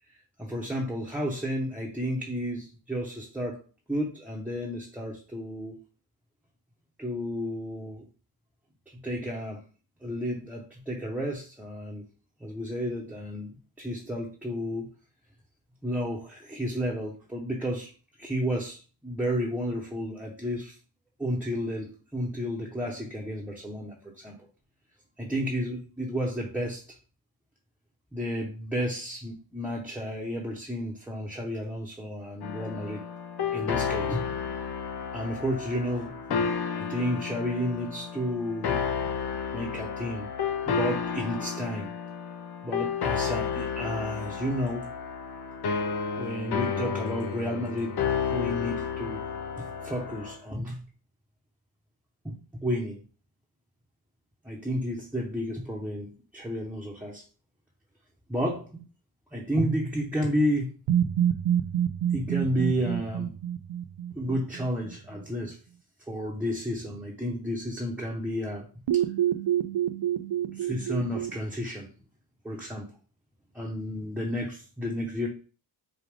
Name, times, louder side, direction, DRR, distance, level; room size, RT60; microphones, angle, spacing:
voice 1, 0.4-3.6 3.9-5.7 7.0-8.1 8.9-9.6 10.0-12.1 12.4-14.9 15.8-17.9 18.2-20.7 21.2-24.4 25.2-26.8 28.1-33.0 33.5-34.2 35.1-38.8 39.5-40.3 40.7-41.9 42.6-44.9 46.2-48.0 48.3-49.3 49.6-50.9 52.2-53.0 54.4-57.2 58.3-58.8 59.3-60.7 62.1-63.3 64.1-65.6 66.1-68.6 68.9-69.0 70.5-71.9 72.4-72.9 73.5-75.3, equal, 5° right, -3 dB, 0.8 m, -32 dB
sound 1, 32.4-50.4, left 6 dB, 60° left, 0.7 m, -32 dB
sound 2, 60.9-64.8 68.9-71.3, right 10 dB, 70° right, 0.5 m, -27 dB
4.9 x 2.5 x 3.4 m, 0.37 s
cardioid pair, 90°, 45 cm